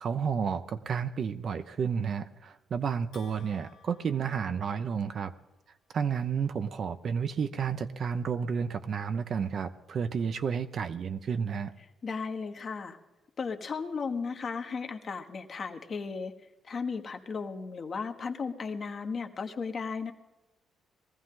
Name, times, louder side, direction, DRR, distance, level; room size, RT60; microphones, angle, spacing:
voice 1, 0.0-5.3 5.9-11.7, right 6 dB, 55° right, 9 dB, 0.7 m, -31 dB
Bell, 3.1-5.3, left 6 dB, 80° left, 1.8 m, -58 dB
voice 2, 12.0-13.0 13.4-16.3 16.6-20.1, left 5 dB, 45° left, 5 dB, 1.3 m, -35 dB
20.5 x 14.5 x 3.8 m, 1.1 s
cardioid pair, 90°, 0 cm